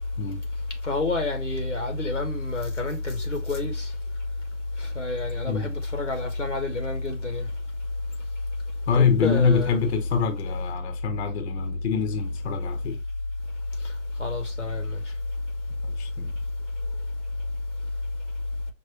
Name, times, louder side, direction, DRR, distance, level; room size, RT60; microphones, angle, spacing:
voice 1, 0.8-3.9 4.9-7.5 8.9-9.7 14.2-15.0, left 3 dB, 90° left, 1.2 m, -28 dB
voice 2, 8.9-13.0 15.8-16.4, left 6 dB, 65° left, 0.9 m, -25 dB
5.3 x 2.6 x 3.0 m
figure-of-eight pair, 90°, 36 cm